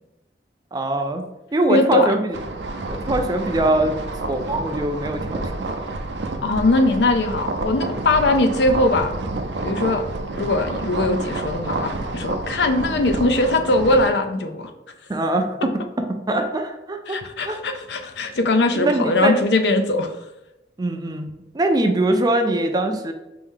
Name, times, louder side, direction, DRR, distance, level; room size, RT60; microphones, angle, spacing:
voice 1, 0.7-1.2 1.5-2.4 2.9-3.9 4.3-5.6 15.1-15.7 16.3-17.2 17.4-17.6 18.7-19.4 20.8-23.1, right 1 dB, 20° right, 5 dB, 0.4 m, -22 dB
voice 2, 1.7-2.2 6.4-9.1 9.6-10.0 10.3-14.7 17.1-20.2, left 2 dB, 70° left, 6 dB, 0.5 m, -20 dB
sound 1, 2.3-14.1, right 2 dB, 90° right, 0.5 m, -29 dB
4.6 x 2.7 x 3.6 m, 0.95 s
head